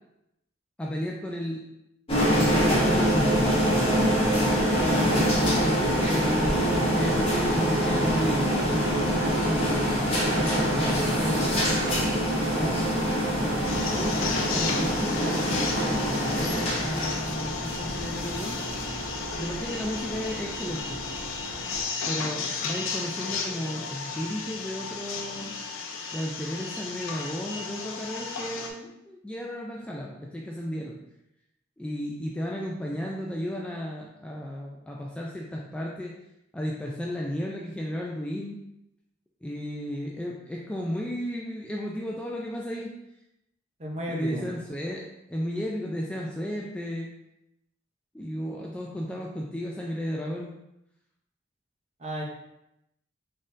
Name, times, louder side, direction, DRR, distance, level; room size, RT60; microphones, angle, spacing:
voice 1, 0.8-1.6 2.3-3.5 5.5-6.6 6.9-11.7 12.4-12.7 13.4-18.6 19.4-21.0 22.1-25.6 26.1-31.0 31.8-36.1 36.5-38.6 39.4-42.9 44.1-47.1 48.1-50.5, equal, 5° left, -3 dB, 0.3 m, -33 dB
sound 1, 2.1-21.8, equal, 30° left, 1.2 m, -25 dB
voice 2, 4.7-5.7 12.6-12.9 43.8-44.4 52.0-52.2, right 1 dB, 35° right, -2 dB, 0.8 m, -35 dB
sound 2, 13.6-28.7, left 5 dB, 85° left, 0.5 m, -34 dB
4.0 x 3.7 x 2.5 m, 0.85 s
head